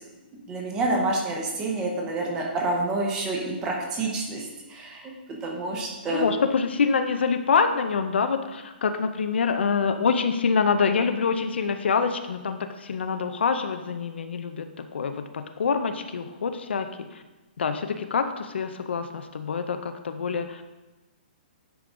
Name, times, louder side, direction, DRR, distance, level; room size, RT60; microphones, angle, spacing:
voice 1, 0.5-5.1 5.4-6.3, right 2 dB, 10° right, -1 dB, 0.8 m, -28 dB
voice 2, 6.1-17.2 17.6-20.6, left 5 dB, 85° left, 8 dB, 0.6 m, -26 dB
10.0 x 3.8 x 3.7 m, 1.1 s
hypercardioid pair, 180°, 6 cm